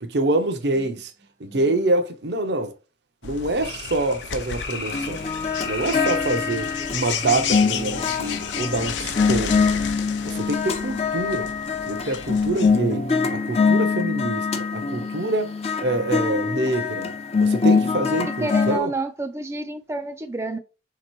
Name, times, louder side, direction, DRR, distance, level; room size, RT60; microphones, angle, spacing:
voice 1, 0.0-1.1 1.4-2.7 3.2-5.3 5.6-9.6 10.2-11.5 11.9-15.5 15.8-17.1 17.4-18.9, right 2 dB, 65° right, 0.6 m, -26 dB
voice 2, 1.4-1.9 18.4-20.6, right 2 dB, 15° right, 0.3 m, -30 dB
sound 1, 3.2-12.7, left 8 dB, 85° left, 0.5 m, -33 dB
sound 2, 3.6-8.7, left 4 dB, 60° left, 1.0 m, -36 dB
sound 3, 4.9-18.8, left 5 dB, 35° left, 0.5 m, -24 dB
3.4 x 2.9 x 4.4 m
head